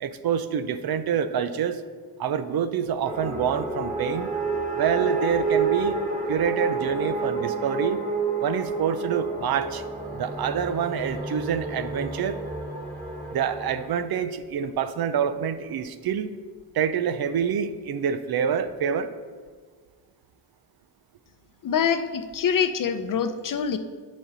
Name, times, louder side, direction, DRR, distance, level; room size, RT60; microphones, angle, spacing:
voice 1, 0.0-1.8 2.2-4.3 4.7-6.0 6.3-8.0 8.4-9.8 10.1-12.4 13.3-16.3 16.7-19.1, right 8 dB, 55° right, 11 dB, 0.7 m, -26 dB
sound 1, 3.1-13.9, right 3 dB, 20° right, 1.9 m, -29 dB
voice 2, 21.6-23.8, left 7 dB, 50° left, 10 dB, 0.7 m, -25 dB
8.4 x 6.4 x 4.1 m, 1.5 s
supercardioid pair, 65°, 43 cm